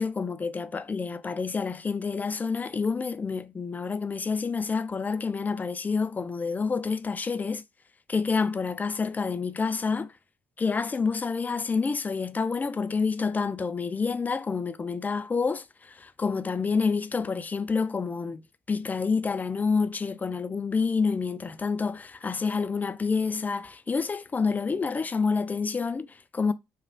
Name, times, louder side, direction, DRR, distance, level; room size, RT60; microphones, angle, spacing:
voice 1, 0.0-7.6 8.1-10.1 10.6-18.4 18.7-26.5, left 5 dB, 25° left, 0.3 m, -28 dB
3.1 x 2.2 x 2.5 m
supercardioid pair, 60°, 6 cm